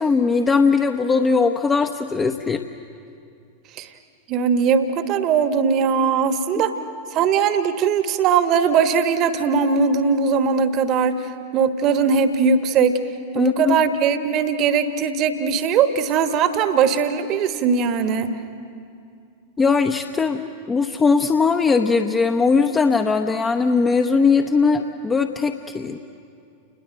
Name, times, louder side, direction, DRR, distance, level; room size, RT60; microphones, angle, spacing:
voice 1, 0.0-2.7 13.4-13.8 19.6-26.0, left 4 dB, 15° left, 6 dB, 0.9 m, -19 dB
voice 2, 4.3-6.7 7.1-13.0 13.3-18.3, right 6 dB, 35° right, 9 dB, 1.3 m, -20 dB
29.5 x 21.0 x 7.8 m, 2.5 s
figure-of-eight pair, 90°, 0 cm